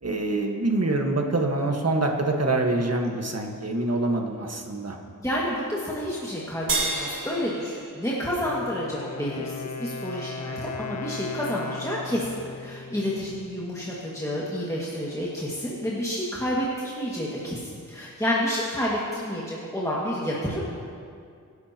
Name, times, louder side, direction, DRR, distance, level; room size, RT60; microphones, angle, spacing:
voice 1, 0.0-5.0, right 2 dB, 50° right, 1 dB, 1.5 m, -25 dB
voice 2, 5.2-20.7, equal, 10° left, -7 dB, 2.0 m, -29 dB
sound 1, 6.7-9.3, right 3 dB, 80° right, 1.8 m, -31 dB
Wind instrument woodwind instrument, 8.4-14.1, left 4 dB, 55° left, 0.7 m, -37 dB
24.0 x 11.0 x 2.9 m, 2.3 s
wide cardioid pair, 70°, 32 cm